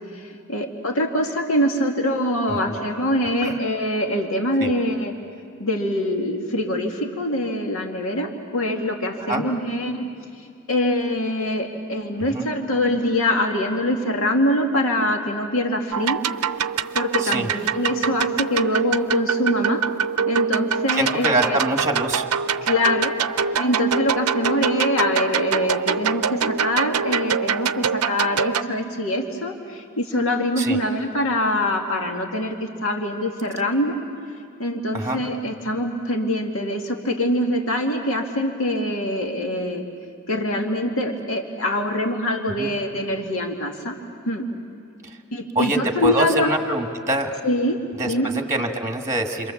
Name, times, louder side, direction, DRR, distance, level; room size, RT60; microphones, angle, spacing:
voice 1, 0.1-5.1 5.6-10.0 10.7-16.2 16.9-19.8 20.3-21.6 22.6-23.1 23.6-34.0 34.6-39.8 40.3-44.0 44.3-44.4 45.3-46.5 47.4-47.8 48.0-48.3, left 1 dB, 65° left, 2 dB, 2.1 m, -24 dB
sound 1, 15.9-28.6, right 6 dB, 90° right, 0.7 m, -24 dB
voice 2, 20.9-22.3 30.6-30.8 34.9-35.2 42.6-42.7 45.5-47.3 48.0-49.5, right 2 dB, 15° right, 4 dB, 1.6 m, -24 dB
29.0 x 26.5 x 7.2 m, 2.4 s
head